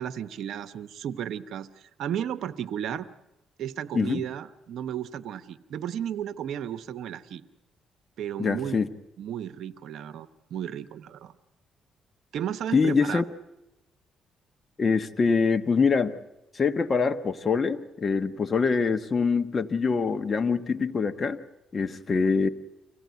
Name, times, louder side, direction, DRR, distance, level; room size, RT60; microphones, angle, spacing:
voice 1, 0.0-3.1 3.6-7.4 8.2-8.8 9.2-11.3 12.3-13.2, right 9 dB, 75° right, 14 dB, 0.9 m, -34 dB
voice 2, 8.4-8.9 12.7-13.2 14.8-16.1 16.5-21.4 21.7-22.5, left 5 dB, 35° left, 10 dB, 1.1 m, -24 dB
25.0 x 17.0 x 9.3 m, 0.97 s
cardioid pair, 90°, 0 cm